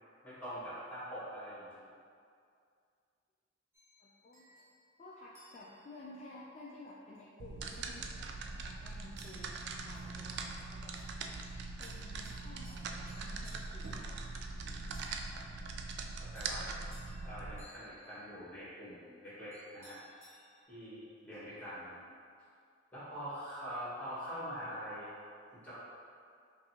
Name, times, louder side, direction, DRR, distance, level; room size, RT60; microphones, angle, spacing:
voice 1, 0.2-1.8 14.6-14.9 15.3-15.4 16.3-16.6 17.2-20.0 20.7-22.0 22.9-25.1 25.5-25.7, equal, 10° left, -11 dB, 1.5 m, -44 dB
sound 1, 3.7-6.1 6.9-7.2 7.7-8.5 9.2-20.6, equal, 15° right, 0.8 m, -62 dB
voice 2, 4.0-4.6 5.0-11.1 11.8-14.2 21.5-21.6, left 2 dB, 35° left, -5 dB, 0.3 m, -53 dB
sound 2, 7.4-17.6, right 3 dB, 60° right, 0.3 m, -42 dB
5.0 x 2.7 x 2.8 m, 2.3 s
head